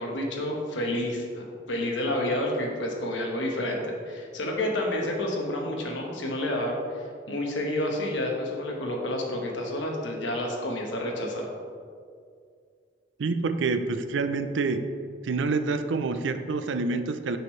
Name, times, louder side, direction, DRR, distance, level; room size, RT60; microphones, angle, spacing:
voice 1, 0.0-11.5, left 1 dB, 85° left, 0 dB, 1.1 m, -29 dB
voice 2, 13.2-14.8 15.2-17.4, right 4 dB, 85° right, 9 dB, 0.4 m, -27 dB
6.7 x 6.3 x 3.1 m, 2.2 s
head